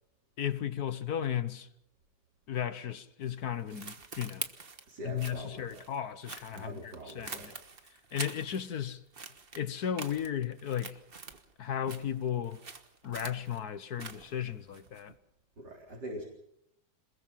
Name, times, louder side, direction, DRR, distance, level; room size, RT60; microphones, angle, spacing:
voice 1, 0.4-1.7 2.5-4.5 5.0-7.5 8.1-9.0 9.5-11.0 11.6-12.6 13.0-15.1, left 9 dB, 60° left, 1.5 m, -35 dB
sound 1, 3.2-8.9 9.1-11.5 11.8-15.2, right 4 dB, 35° right, 1.4 m, -45 dB
voice 2, 4.9-5.8 6.5-7.5 15.6-16.2, right 1 dB, 65° right, 4.6 m, -43 dB
27.5 x 21.0 x 5.8 m
omnidirectional pair, 2.0 m